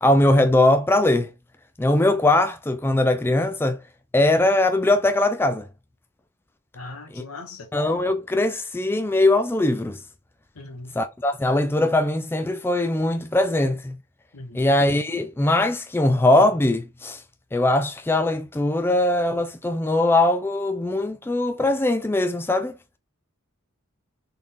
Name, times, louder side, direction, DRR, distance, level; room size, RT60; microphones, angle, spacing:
voice 1, 0.0-1.3 1.8-3.8 4.1-5.6 7.1-7.2 7.7-10.0 11.0-14.0 14.5-17.2 17.5-22.7, left 2 dB, 10° left, 0.3 m, -21 dB
voice 2, 6.7-7.7 10.6-10.9 14.3-14.7, left 3 dB, 90° left, 1.2 m, -39 dB
3.9 x 3.6 x 2.6 m
head